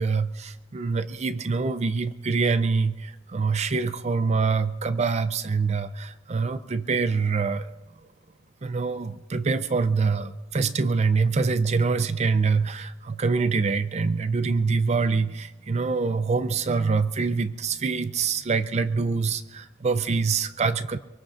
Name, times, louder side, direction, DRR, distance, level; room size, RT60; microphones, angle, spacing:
voice 1, 0.0-7.7 8.6-21.0, right 4 dB, 30° right, 11 dB, 0.4 m, -25 dB
24.0 x 22.5 x 2.5 m, 1.1 s
head